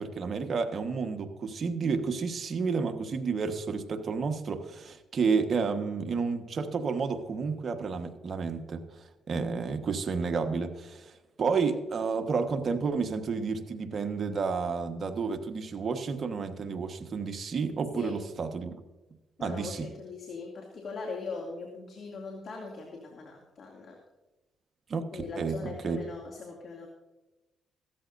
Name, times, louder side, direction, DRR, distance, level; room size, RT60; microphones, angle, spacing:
voice 1, 0.0-11.1 11.4-18.7 19.4-19.9 24.9-26.0, right 5 dB, 50° right, 6 dB, 1.4 m, -31 dB
voice 2, 19.4-24.0 25.1-26.9, left 4 dB, 55° left, 0 dB, 2.5 m, -40 dB
17.0 x 13.5 x 2.7 m, 1.1 s
cardioid pair, 90°, 0 cm